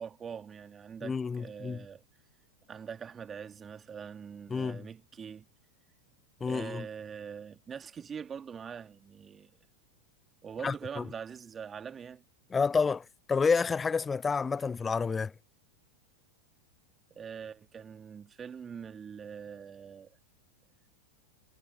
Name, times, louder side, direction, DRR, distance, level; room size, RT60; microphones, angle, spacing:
voice 1, 0.0-2.0 2.7-5.5 6.5-9.5 10.4-12.2 17.2-20.2, right 7 dB, 20° right, 1.7 m, -43 dB
voice 2, 1.0-1.8 4.5-4.8 6.4-6.9 10.6-11.0 12.5-15.3, left 5 dB, 15° left, 0.3 m, -29 dB
figure-of-eight pair, 90°, 0 cm